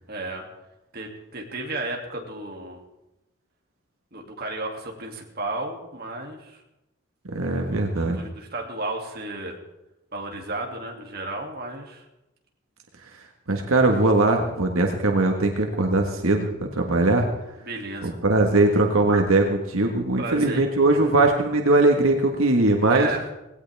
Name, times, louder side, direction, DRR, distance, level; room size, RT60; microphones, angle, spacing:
voice 1, 0.1-0.4 0.9-2.8 4.1-6.6 7.7-9.6 10.1-12.1 17.6-18.2 20.2-20.6 22.9-23.3, right 2 dB, 45° right, 1 dB, 2.5 m, -33 dB
voice 2, 7.3-8.2 13.5-17.3 18.0-23.1, right 2 dB, 80° right, 3 dB, 1.6 m, -20 dB
18.5 x 17.0 x 3.5 m, 0.91 s
head